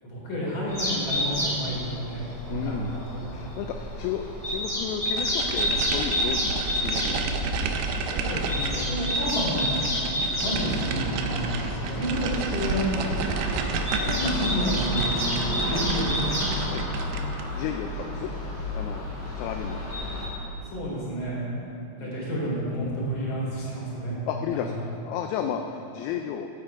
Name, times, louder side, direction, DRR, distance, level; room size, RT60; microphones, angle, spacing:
voice 1, 0.0-3.2 8.1-9.8 10.3-13.4 13.9-15.2 15.5-16.3 20.6-21.4 22.0-24.2 24.5-24.6, equal, 30° left, -6 dB, 3.7 m, -30 dB
sound 1, 0.7-20.3, left 1 dB, 15° left, 2.5 m, -30 dB
voice 2, 2.5-2.9 3.3-7.5 10.5-10.7 15.7-15.9 16.7-16.9 17.5-18.3 18.7-19.1 19.4-19.9 20.2-20.3 22.0-22.5 24.3-26.5, left 8 dB, 80° left, 5 dB, 2.3 m, -33 dB
sound 2, 5.2-17.5, right 5 dB, 75° right, 2.5 m, -31 dB
15.5 x 8.7 x 4.7 m, 2.7 s
omnidirectional pair, 4.6 m